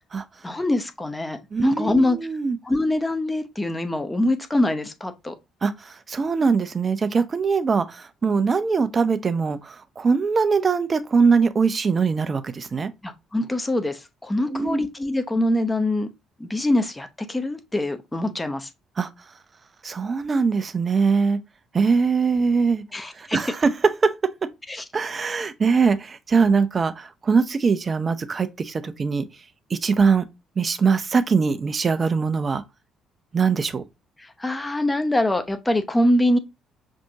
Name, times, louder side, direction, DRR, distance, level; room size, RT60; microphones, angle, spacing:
voice 1, 0.4-2.2 2.6-5.3 13.0-16.1 16.4-18.7 22.9-23.4 24.7-24.8 34.2-36.4, left 1 dB, 15° left, 0.7 m, -24 dB
voice 2, 1.5-2.6 5.6-12.9 14.4-14.8 19.0-19.1 19.8-21.4 21.7-22.8 23.1-24.1 24.9-29.3 29.7-30.2 30.6-32.6 33.3-33.8, right 5 dB, 35° right, 0.5 m, -22 dB
5.6 x 2.6 x 2.7 m
figure-of-eight pair, 45°, 0 cm